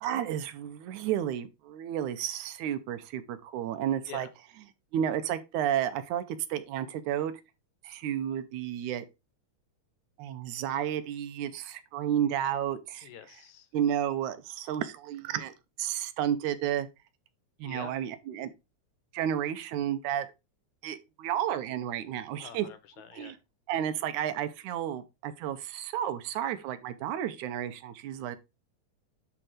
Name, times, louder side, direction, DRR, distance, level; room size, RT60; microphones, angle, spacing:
voice 1, 0.0-4.3 4.9-7.3 7.8-9.1 10.2-13.1 13.7-16.9 17.6-18.5 19.1-20.3 20.8-22.7 23.1-23.4 23.7-28.4, right 10 dB, 85° right, 2.2 m, -32 dB
voice 2, 13.0-13.7 17.6-17.9 22.4-23.4, left 9 dB, 75° left, 2.3 m, -46 dB
10.5 x 3.6 x 4.9 m
omnidirectional pair, 3.4 m